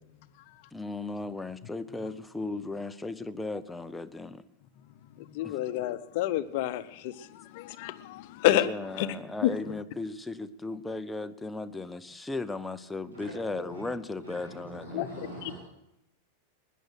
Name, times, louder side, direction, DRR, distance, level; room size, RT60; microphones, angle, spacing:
voice 1, 0.7-4.4 5.4-6.0 8.5-15.0, left 2 dB, 5° left, 0.7 m, -36 dB
voice 2, 5.2-8.7 9.0-9.1 9.4-9.5 14.9-15.1 15.4-15.5, left 14 dB, 50° left, 0.8 m, -29 dB
voice 3, 14.2-15.5, right 1 dB, 70° right, 6.8 m, -43 dB
19.5 x 10.0 x 6.3 m
figure-of-eight pair, 90°, 0 cm